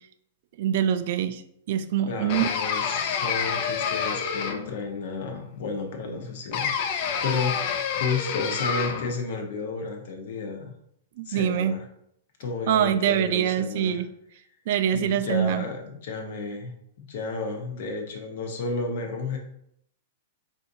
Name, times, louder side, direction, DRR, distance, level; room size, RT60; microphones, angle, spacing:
voice 1, 0.6-1.4 1.7-2.5 11.2-11.7 12.7-14.1 14.7-15.6, right 9 dB, 50° right, 10 dB, 0.3 m, -24 dB
voice 2, 2.1-10.7 11.3-11.9 12.4-14.0 14.9-16.7 17.0-19.4, left 4 dB, 55° left, 3 dB, 0.9 m, -32 dB
sound 1, 2.3-4.8 6.5-9.2, left 6 dB, 40° left, 0.4 m, -28 dB
5.6 x 2.6 x 2.7 m, 0.74 s
hypercardioid pair, 160°, 0 cm